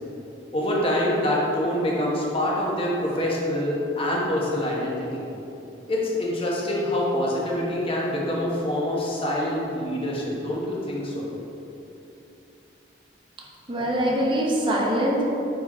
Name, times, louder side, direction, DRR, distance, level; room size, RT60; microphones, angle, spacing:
voice 1, 0.5-5.3 5.9-11.2, left 1 dB, 30° left, -4 dB, 1.1 m, -25 dB
voice 2, 13.7-15.2, equal, 30° right, -2 dB, 0.9 m, -23 dB
5.6 x 4.8 x 4.3 m, 2.9 s
head